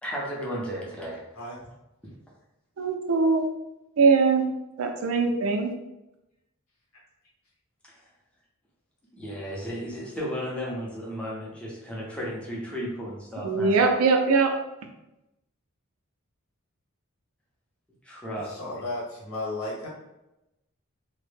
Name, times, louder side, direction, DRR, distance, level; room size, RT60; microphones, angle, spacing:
voice 1, 0.0-1.2 7.8-8.0 9.1-13.8 18.0-18.8, equal, 5° left, -4 dB, 0.5 m, -34 dB
voice 2, 2.8-3.5 4.0-4.5 4.8-5.7 13.4-14.5, right 4 dB, 85° right, 4 dB, 0.4 m, -21 dB
voice 3, 18.3-19.9, left 2 dB, 85° left, -5 dB, 1.0 m, -34 dB
2.1 x 2.0 x 3.1 m, 0.93 s
head